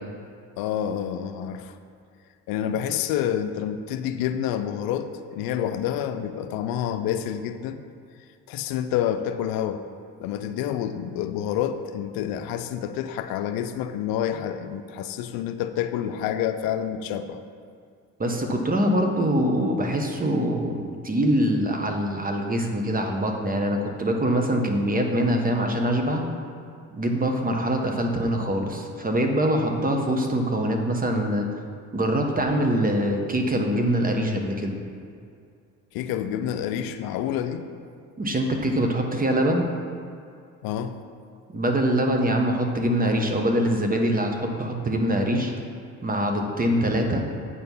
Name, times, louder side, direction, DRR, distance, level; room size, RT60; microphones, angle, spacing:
voice 1, 0.6-1.8 2.5-7.8 8.5-9.8 10.2-17.4 35.9-37.7 40.6-41.0, left 10 dB, 80° left, 9 dB, 0.5 m, -28 dB
voice 2, 18.2-26.2 26.9-31.5 31.9-34.8 38.2-39.6 41.5-45.5 46.0-47.2, right 1 dB, 25° right, 3 dB, 1.1 m, -24 dB
8.6 x 4.5 x 5.4 m, 2.4 s
supercardioid pair, 75°, 35 cm